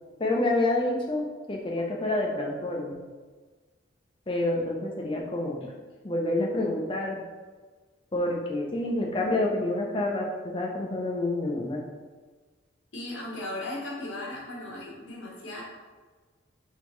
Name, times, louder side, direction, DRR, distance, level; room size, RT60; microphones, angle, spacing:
voice 1, 0.2-3.0 4.3-5.6 6.0-7.2 8.1-11.8, left 2 dB, 25° left, -1 dB, 0.6 m, -28 dB
voice 2, 12.9-15.6, left 1 dB, 65° left, -4 dB, 1.2 m, -37 dB
3.6 x 3.5 x 3.2 m, 1.4 s
head